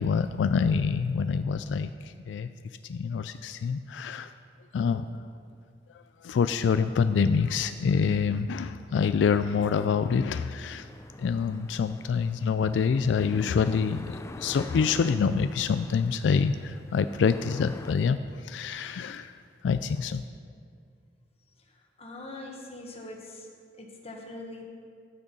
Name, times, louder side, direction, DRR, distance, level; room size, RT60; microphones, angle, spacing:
voice 1, 0.0-1.9 2.3-2.5 2.9-4.3 4.7-5.1 6.2-10.9 11.2-19.3 19.6-20.2, left 6 dB, 90° left, 11 dB, 0.3 m, -26 dB
sound 1, 9.4-17.9, left 2 dB, 15° left, 0.4 m, -47 dB
voice 2, 22.0-23.5 23.8-24.6, left 2 dB, 35° left, 1 dB, 1.4 m, -42 dB
12.5 x 6.2 x 5.4 m, 2.2 s
head